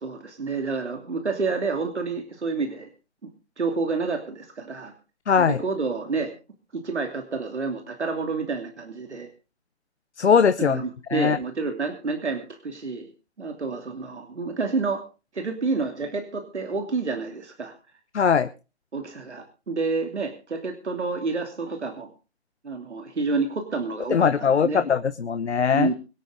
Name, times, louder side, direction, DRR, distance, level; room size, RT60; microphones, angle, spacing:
voice 1, 0.0-2.9 3.6-4.9 5.4-6.3 6.7-9.3 10.6-13.1 13.4-15.0 15.3-17.7 18.9-22.1 22.6-24.8 25.7-25.9, right 4 dB, 85° right, 4 dB, 2.9 m, -29 dB
voice 2, 5.3-5.6 10.2-10.8 11.1-11.4 18.1-18.5 24.1-25.9, left 6 dB, 80° left, 12 dB, 1.0 m, -20 dB
24.5 x 8.8 x 3.8 m, 0.32 s
hypercardioid pair, 150°, 33 cm